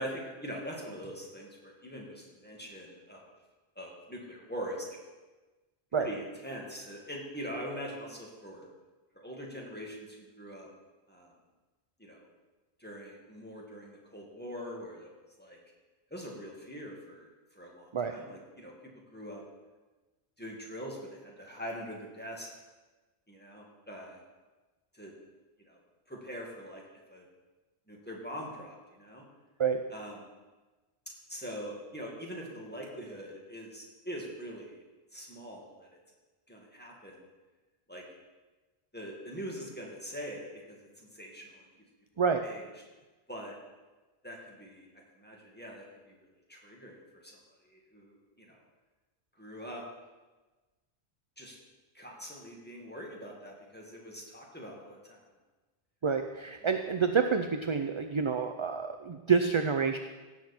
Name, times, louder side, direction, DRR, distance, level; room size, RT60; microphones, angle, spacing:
voice 1, 0.0-3.3 3.8-4.9 6.0-8.7 9.2-10.7 11.1-11.3 12.0-12.3 12.8-15.1 15.4-15.6 16.1-17.3 17.6-18.7 19.1-19.4 20.4-22.5 23.3-24.2 24.9-25.1 25.6-25.8 26.1-27.3 27.9-29.2 29.9-30.2 31.3-34.8 35.1-35.9 36.5-37.2 37.9-38.0 38.9-41.7 42.4-42.6 43.3-43.6 44.2-44.9 45.2-46.2 46.5-47.4 47.7-48.6 49.4-49.8 51.4-51.6 51.9-55.2 56.6-56.7, equal, 10° left, -2 dB, 2.2 m, -43 dB
voice 2, 56.0-60.0, right 6 dB, 40° right, 6 dB, 0.5 m, -28 dB
16.5 x 7.3 x 4.4 m, 1.2 s
omnidirectional pair, 1.0 m